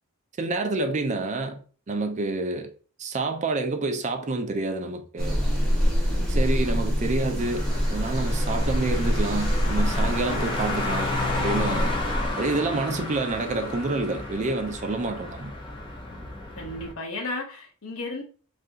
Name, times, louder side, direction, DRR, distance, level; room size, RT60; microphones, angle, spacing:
voice 1, 0.4-1.6 1.9-2.7 3.0-5.4 6.3-11.9 12.3-15.5, right 3 dB, 30° right, 0.4 m, -28 dB
sound 1, 5.2-12.3, equal, 5° left, 1.1 m, -25 dB
Car, 7.4-16.9, left 2 dB, 20° left, 0.6 m, -32 dB
voice 2, 16.6-18.2, left 2 dB, 70° left, 0.9 m, -33 dB
2.7 x 2.6 x 3.5 m
head